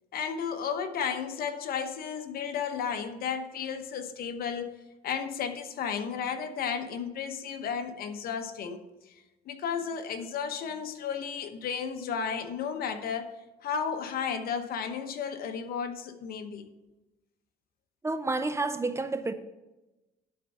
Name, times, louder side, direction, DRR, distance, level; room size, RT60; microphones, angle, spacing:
voice 1, 0.1-4.7 5.0-13.4 13.6-16.7, left 7 dB, 60° left, 8 dB, 0.9 m, -33 dB
voice 2, 18.0-19.3, right 3 dB, 15° right, 10 dB, 0.5 m, -30 dB
11.5 x 4.4 x 5.4 m, 1.0 s
cardioid pair, 110°, 17 cm